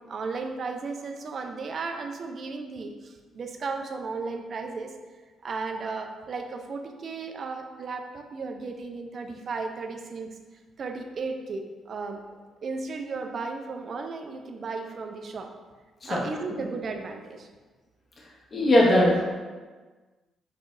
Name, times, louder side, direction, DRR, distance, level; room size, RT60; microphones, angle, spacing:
voice 1, 0.0-4.9 5.4-10.4 10.8-15.5 16.1-17.5, right 4 dB, 55° right, 4 dB, 0.5 m, -35 dB
voice 2, 18.5-19.3, left 1 dB, 45° left, -5 dB, 1.4 m, -21 dB
5.2 x 3.2 x 2.6 m, 1.3 s
supercardioid pair, 60°, 0 cm